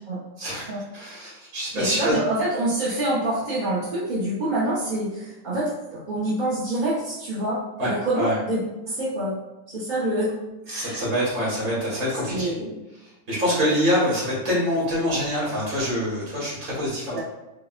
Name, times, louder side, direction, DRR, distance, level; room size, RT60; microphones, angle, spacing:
voice 1, 0.4-0.7 0.9-2.2 7.8-8.4 10.7-12.5 13.0-17.2, equal, 75° right, -7 dB, 2.1 m, -25 dB
voice 2, 1.7-7.6 7.8-8.6 8.9-9.4 9.7-10.3 10.7-11.0 12.2-12.8 17.1-17.2, right 1 dB, 45° right, -8 dB, 0.6 m, -26 dB
4.8 x 2.0 x 2.4 m, 1.0 s
omnidirectional pair, 1.5 m